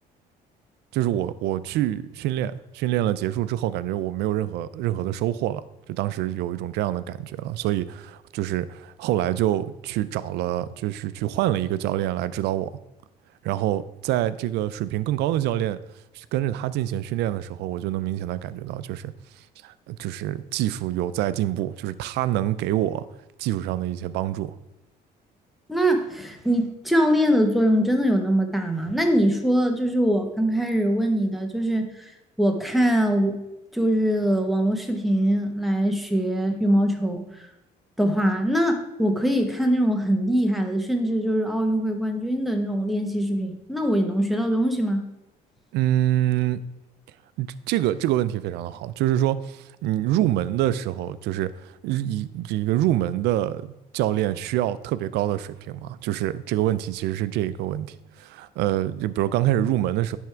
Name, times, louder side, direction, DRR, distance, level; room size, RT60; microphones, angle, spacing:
voice 1, 0.9-5.6 5.9-12.8 13.4-15.8 16.1-19.1 19.6-23.1 23.4-24.5 45.7-46.6 47.4-60.2, right 13 dB, 85° right, 15 dB, 0.4 m, -26 dB
voice 2, 25.7-32.1 32.4-33.4 33.7-37.2 38.0-45.0, equal, ahead, 3 dB, 1.0 m, -22 dB
10.5 x 3.5 x 4.5 m, 0.93 s
cardioid pair, 110°, 17 cm